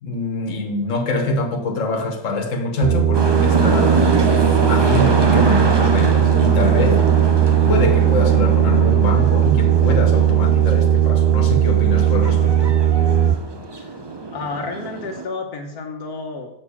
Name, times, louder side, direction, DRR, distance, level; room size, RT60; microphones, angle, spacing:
voice 1, 0.0-4.1 4.7-7.0 7.7-12.7, left 2 dB, 60° left, 3 dB, 1.6 m, -24 dB
sound 1, 2.8-13.4, right 10 dB, 90° right, 0.5 m, -17 dB
sound 2, 3.1-15.3, right 2 dB, 35° right, 0.4 m, -24 dB
voice 2, 14.3-16.5, left 3 dB, 80° left, 1 dB, 1.6 m, -31 dB
6.8 x 5.5 x 7.1 m, 0.81 s
omnidirectional pair, 1.6 m